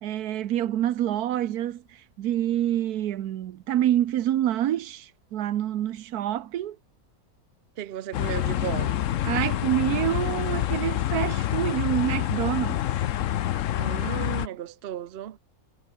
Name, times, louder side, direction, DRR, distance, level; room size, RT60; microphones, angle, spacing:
voice 1, 0.0-6.8 9.2-12.9, right 12 dB, 85° right, 1.3 m, -27 dB
voice 2, 7.8-9.0 13.7-15.4, right 11 dB, 55° right, 0.8 m, -35 dB
sound 1, 8.1-14.5, left 12 dB, 65° left, 1.0 m, -27 dB
omnidirectional pair, 1.6 m